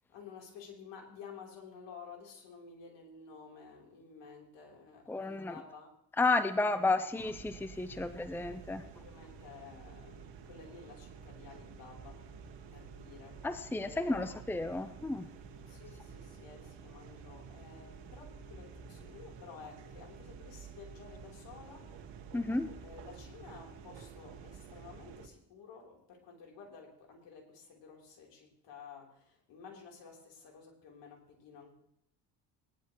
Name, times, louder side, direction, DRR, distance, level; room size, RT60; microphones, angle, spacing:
voice 1, 0.1-5.9 6.5-7.1 8.8-13.5 13.8-14.3 15.7-21.9 22.8-31.7, left 5 dB, 70° left, 0 dB, 3.9 m, -52 dB
voice 2, 5.1-5.5 6.2-8.8 13.4-15.3 22.3-22.7, left 3 dB, 5° left, 11 dB, 0.8 m, -32 dB
sound 1, 7.2-25.3, right 6 dB, 75° right, 1.7 m, -50 dB
18.5 x 11.0 x 3.1 m, 0.70 s
supercardioid pair, 70°, 44 cm